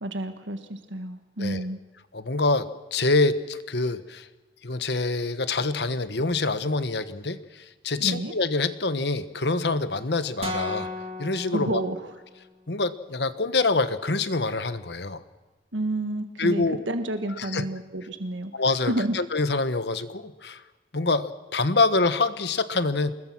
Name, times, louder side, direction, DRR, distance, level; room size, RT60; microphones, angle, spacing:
voice 1, 0.0-1.8 8.0-8.3 11.5-12.1 15.7-18.5 18.8-19.2, right 1 dB, 85° right, 7 dB, 1.7 m, -30 dB
voice 2, 2.1-4.3 4.6-10.9 11.2-11.8 12.7-15.2 16.4-16.8 17.4-17.6 18.5-20.6 20.9-23.1, left 3 dB, 65° left, 12 dB, 1.3 m, -26 dB
sound 1, 10.4-12.5, left 1 dB, 30° right, 3.0 m, -35 dB
27.5 x 21.0 x 6.1 m, 1.2 s
head